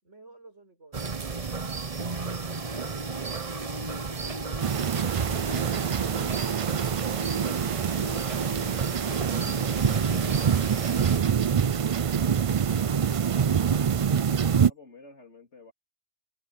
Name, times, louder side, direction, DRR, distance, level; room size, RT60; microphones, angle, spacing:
voice 1, 0.0-3.4, right 3 dB, 90° right, 5.4 m, -55 dB
sound 1, 0.9-11.2, right 4 dB, 30° right, 1.0 m, -33 dB
sound 2, 1.9-11.7 14.0-14.1, left 3 dB, 30° left, 3.6 m, -45 dB
sound 3, 4.6-14.7, right 7 dB, 60° right, 0.3 m, -26 dB
voice 2, 12.7-13.8 14.6-15.7, left 3 dB, 70° left, 4.0 m, -52 dB
omnidirectional pair, 1.2 m